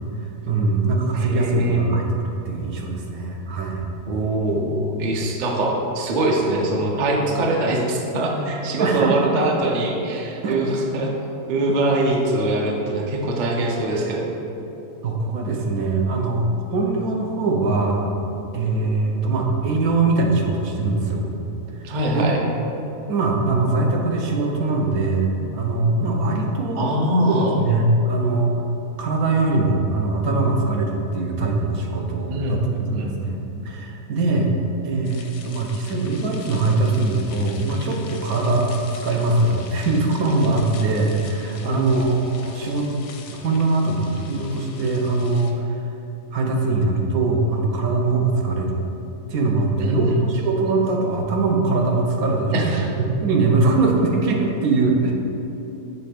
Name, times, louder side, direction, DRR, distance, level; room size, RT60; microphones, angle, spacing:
voice 1, 0.5-3.9 8.8-9.8 10.4-10.6 15.0-18.1 18.5-21.3 22.1-22.3 23.1-26.9 27.3-28.5 29.0-32.6 32.9-34.5 34.8-38.8 39.0-42.9 43.3-45.8 46.3-48.8 49.3-55.1, right 3 dB, 80° right, 0 dB, 1.2 m, -22 dB
voice 2, 1.1-1.9 4.1-11.1 11.5-14.3 21.8-22.4 26.8-27.6 32.3-33.2 41.6-42.0 49.8-50.2 50.6-50.7 52.5-52.9, right 1 dB, 45° right, 0 dB, 0.6 m, -23 dB
sound 1, 35.0-45.5, left 6 dB, 85° left, 1.1 m, -44 dB
6.7 x 3.3 x 5.0 m, 3.0 s
omnidirectional pair, 1.5 m